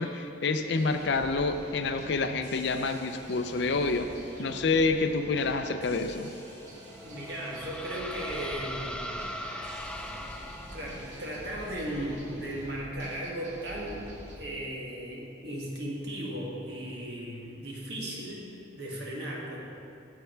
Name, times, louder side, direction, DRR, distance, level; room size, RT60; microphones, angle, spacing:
voice 1, 0.0-4.1 4.4-6.3, left 3 dB, 65° left, 7 dB, 0.5 m, -28 dB
sound 1, 0.7-14.4, equal, 40° right, 1.8 m, -46 dB
sound 2, 6.9-11.2, equal, 5° left, 0.3 m, -40 dB
voice 2, 7.0-9.8 10.1-10.3 10.7-14.1 14.4-18.5 18.7-19.6, right 1 dB, 60° right, -4 dB, 1.8 m, -37 dB
8.3 x 8.1 x 4.5 m, 2.7 s
head